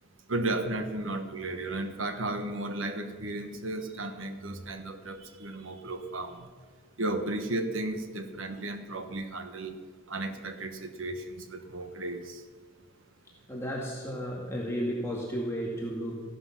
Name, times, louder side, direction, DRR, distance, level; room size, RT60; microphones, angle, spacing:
voice 1, 0.3-6.5 7.0-9.8 10.1-12.4, right 2 dB, 70° right, 7 dB, 1.3 m, -34 dB
voice 2, 13.5-16.2, equal, 15° left, -4 dB, 2.0 m, -33 dB
15.0 x 11.5 x 6.0 m, 1.5 s
head